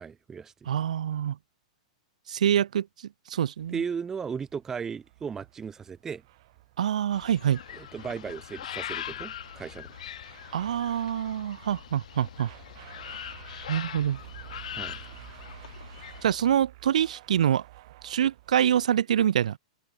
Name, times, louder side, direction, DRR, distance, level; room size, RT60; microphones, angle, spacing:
voice 1, 0.0-0.5 3.7-6.2 7.7-9.9 14.7-15.0, right 6 dB, 10° right, 1.3 m, -36 dB
voice 2, 0.7-1.4 2.3-2.9 3.3-3.8 6.8-7.6 10.5-12.5 13.7-14.2 16.2-17.6 18.0-19.6, right 9 dB, 80° right, 1.3 m, -25 dB
sound 1, 3.6-18.9, right 18 dB, 50° right, 2.9 m, -51 dB
sound 2, 7.1-16.4, left 10 dB, 75° left, 2.5 m, -41 dB
hypercardioid pair, 155°, 4 cm